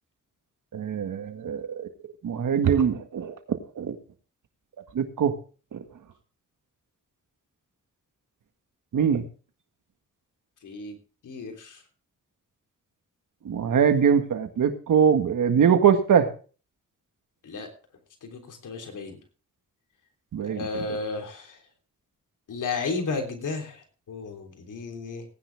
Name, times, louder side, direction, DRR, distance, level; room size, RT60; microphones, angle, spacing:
voice 1, 0.7-1.9 2.2-4.0 4.9-5.3 5.7-5.8 8.9-9.2 13.5-16.3 20.3-20.9, right 7 dB, 90° right, 8 dB, 1.8 m, -22 dB
voice 2, 10.6-10.9 11.2-11.8 17.4-17.7 18.2-19.2 20.4-21.5 22.5-23.8 24.1-25.2, left 4 dB, 85° left, 3 dB, 3.5 m, -33 dB
18.0 x 10.0 x 3.5 m, 0.37 s
cardioid pair, 60°, 30 cm